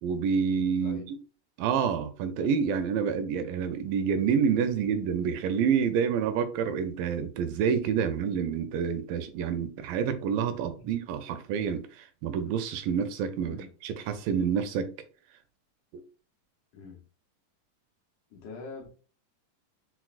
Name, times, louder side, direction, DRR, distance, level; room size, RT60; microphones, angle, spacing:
voice 1, 0.0-1.2 1.6-13.6 13.8-14.9 15.9-16.0, right 7 dB, 85° right, 2.2 m, -28 dB
voice 2, 18.3-18.9, left 4 dB, 80° left, 1.8 m, -43 dB
5.8 x 2.0 x 2.3 m
omnidirectional pair, 4.0 m